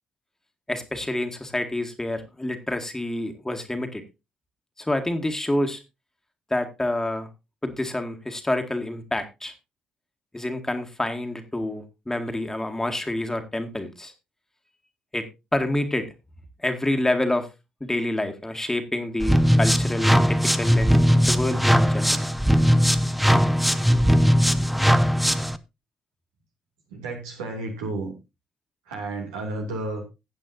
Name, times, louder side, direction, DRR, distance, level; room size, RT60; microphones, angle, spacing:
voice 1, 0.7-4.0 4.8-5.8 6.5-7.3 7.6-9.5 10.3-14.1 15.1-16.1 16.6-17.5 17.8-22.2, left 1 dB, 15° left, 6 dB, 2.0 m, -28 dB
sound 1, 19.2-25.6, equal, ahead, 0.8 m, -19 dB
voice 2, 26.9-28.1 28.8-30.0, right 2 dB, 75° right, 1 dB, 2.7 m, -32 dB
15.5 x 8.4 x 2.7 m, 0.25 s
figure-of-eight pair, 40°, 3 cm